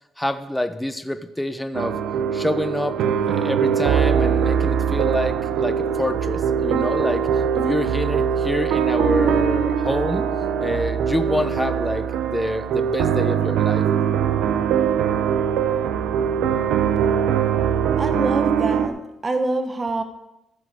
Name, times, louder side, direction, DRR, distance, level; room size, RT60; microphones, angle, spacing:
voice 1, 0.2-2.0 2.3-3.0 3.3-7.3 7.5-10.3 10.6-13.9, left 1 dB, 5° left, 9 dB, 0.8 m, -26 dB
sound 1, 1.7-18.9, right 8 dB, 85° right, 0.8 m, -22 dB
voice 2, 18.0-20.0, right 2 dB, 30° right, 7 dB, 1.0 m, -25 dB
14.5 x 6.1 x 4.9 m, 0.89 s
cardioid pair, 90°, 0 cm